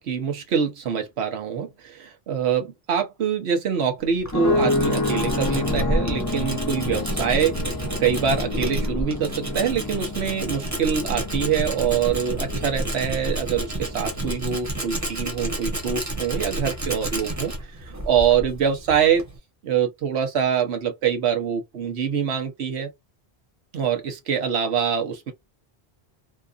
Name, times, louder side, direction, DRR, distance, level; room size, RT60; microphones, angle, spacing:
voice 1, 0.0-7.6 8.0-17.5 17.8-19.2 19.6-22.9 23.7-25.3, right 7 dB, 90° right, 1.1 m, -24 dB
Tools, 4.0-19.4, right 1 dB, 20° right, 0.8 m, -30 dB
sound 1, 4.3-14.3, left 2 dB, 20° left, 0.6 m, -29 dB
2.8 x 2.3 x 2.4 m
omnidirectional pair, 1.1 m